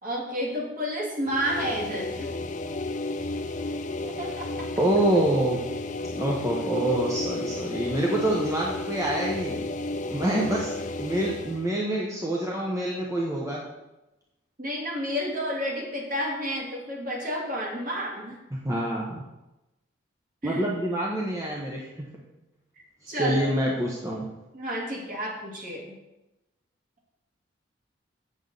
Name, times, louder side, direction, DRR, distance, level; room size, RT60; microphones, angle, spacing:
voice 1, 0.0-2.3 4.0-4.5 14.6-18.4 20.4-20.6 23.1-23.5 24.5-25.9, equal, 45° right, -3 dB, 2.4 m, -31 dB
sound 1, 1.2-11.7, left 2 dB, 40° left, 0.5 m, -32 dB
voice 2, 4.8-5.6 6.1-9.6 10.1-13.6 18.5-19.2 20.4-22.1 23.0-24.3, right 1 dB, 15° right, -3 dB, 0.9 m, -26 dB
7.8 x 7.6 x 3.9 m, 0.97 s
head